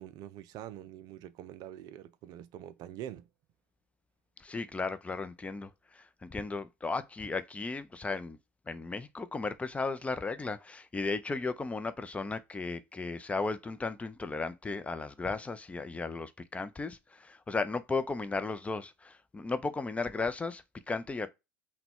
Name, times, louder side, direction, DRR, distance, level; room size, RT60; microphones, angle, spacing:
voice 1, 0.0-3.3, right 11 dB, 45° right, 0.4 m, -45 dB
voice 2, 4.4-8.4 8.7-21.3, left 3 dB, 15° left, 0.6 m, -35 dB
5.8 x 2.3 x 3.6 m
figure-of-eight pair, 75°, 9 cm